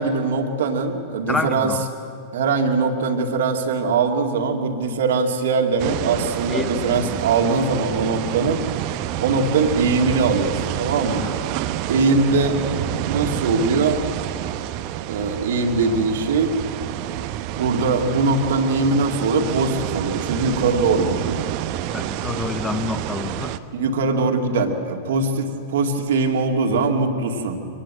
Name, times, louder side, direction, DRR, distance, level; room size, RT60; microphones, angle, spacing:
voice 1, 0.0-1.7 2.3-8.6 9.2-11.3 11.9-12.6 13.1-14.0 15.1-16.5 17.5-21.4 23.7-27.6, right 4 dB, 60° right, 4 dB, 2.2 m, -21 dB
voice 2, 1.3-1.8 6.5-7.1 11.2-11.4 21.9-23.6, left 3 dB, 10° left, 9 dB, 1.2 m, -28 dB
sound 1, 5.8-23.6, right 13 dB, 45° right, 0.9 m, -28 dB
25.5 x 19.0 x 7.8 m, 2.4 s
figure-of-eight pair, 90°, 0 cm